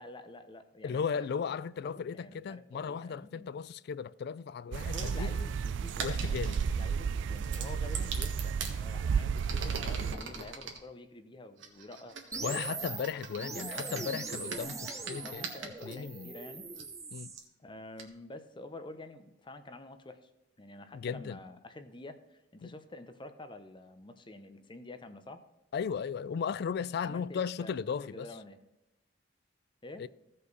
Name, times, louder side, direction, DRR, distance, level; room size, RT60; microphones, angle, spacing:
voice 1, 0.0-1.5 1.8-3.5 4.7-12.8 13.6-14.0 15.2-16.7 17.6-20.3 20.6-25.4 27.0-28.6 29.8-30.0, left 2 dB, 25° left, 0.7 m, -48 dB
voice 2, 0.8-5.3 6.0-6.6 12.4-16.3 17.1-17.3 20.9-21.4 22.6-22.7 25.7-28.3 30.0-30.1, left 6 dB, 60° left, 0.3 m, -36 dB
sound 1, 4.7-10.2, right 6 dB, 70° right, 0.3 m, -32 dB
sound 2, 4.9-5.2 5.9-6.7 7.4-8.8 9.3-10.8 11.6-16.0 16.8-16.9 17.4-17.5 18.0-18.1, right 5 dB, 85° right, 1.6 m, -42 dB
sound 3, 12.3-17.4, right 4 dB, 15° right, 0.7 m, -41 dB
15.5 x 5.5 x 4.0 m
head